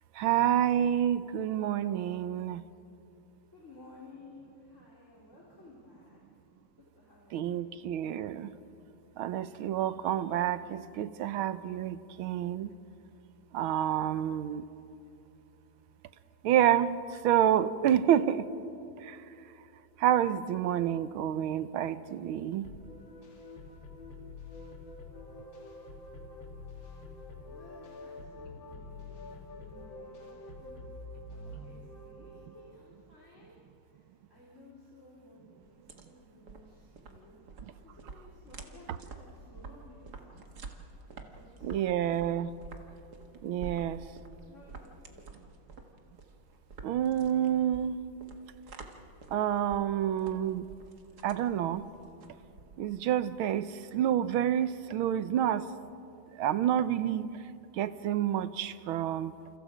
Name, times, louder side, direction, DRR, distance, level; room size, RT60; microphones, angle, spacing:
voice 1, 0.2-2.6 7.3-8.5 9.2-12.7 13.5-14.6 16.4-18.5 19.1-19.2 20.0-22.6 41.6-42.5 43.4-44.0 46.8-47.9 49.3-50.7 51.2-51.8 52.8-55.6 56.4-57.3 57.8-59.3, right 10 dB, 80° right, 13 dB, 1.6 m, -28 dB
voice 2, 3.5-6.2 7.0-7.6 27.4-30.2 30.4-30.8 31.3-33.6 33.9-40.5 41.1-41.9 43.3-43.5 44.5-45.4, left 2 dB, 35° left, -5 dB, 3.9 m, -56 dB
sound 1, 22.6-32.7, left 2 dB, 65° left, 2.6 m, -46 dB
sound 2, 35.6-53.1, right 4 dB, 50° right, 2.0 m, -49 dB
30.0 x 28.5 x 5.1 m, 2.7 s
omnidirectional pair, 2.3 m